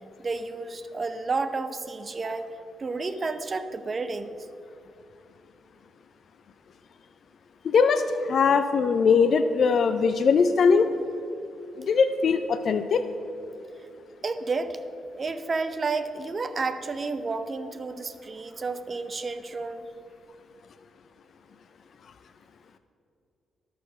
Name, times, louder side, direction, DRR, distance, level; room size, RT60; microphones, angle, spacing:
voice 1, 0.2-2.5 2.8-4.4 14.2-14.8 15.1-19.9, right 3 dB, 45° right, 10 dB, 0.7 m, -31 dB
voice 2, 7.6-10.9 11.8-13.0, left 5 dB, 60° left, 10 dB, 0.4 m, -21 dB
11.0 x 6.7 x 6.3 m, 2.7 s
hypercardioid pair, 50°, 0 cm